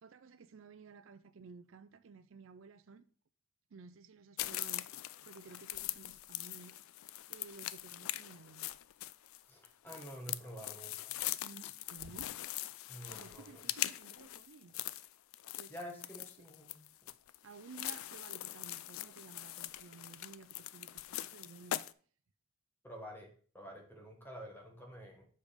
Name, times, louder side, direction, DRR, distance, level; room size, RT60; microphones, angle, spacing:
voice 1, 0.0-3.0 3.7-8.7 11.4-12.3 13.1-14.8 15.6-15.7 17.4-21.8, right 4 dB, 60° right, 0.4 m, -55 dB
sound 1, 4.4-21.9, left 14 dB, 70° left, 0.3 m, -42 dB
voice 2, 9.5-11.1 12.9-13.7 15.7-16.8 22.8-25.2, equal, 10° left, 1.5 m, -49 dB
6.7 x 5.1 x 5.0 m
head